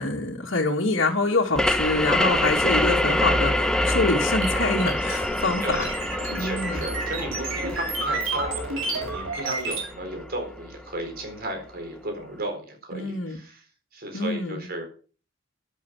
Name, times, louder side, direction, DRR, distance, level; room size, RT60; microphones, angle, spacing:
voice 1, 0.0-5.8 6.3-6.8 12.9-13.4 14.1-14.7, left 2 dB, 65° left, -2 dB, 2.3 m, -25 dB
sound 1, 1.6-10.9, left 1 dB, 5° left, 0.9 m, -26 dB
sound 2, 4.4-9.9, right 3 dB, 75° right, 3.8 m, -31 dB
voice 2, 6.4-13.6 13.9-14.9, right 1 dB, 50° right, 4 dB, 4.2 m, -34 dB
11.0 x 8.7 x 6.2 m, 0.40 s
head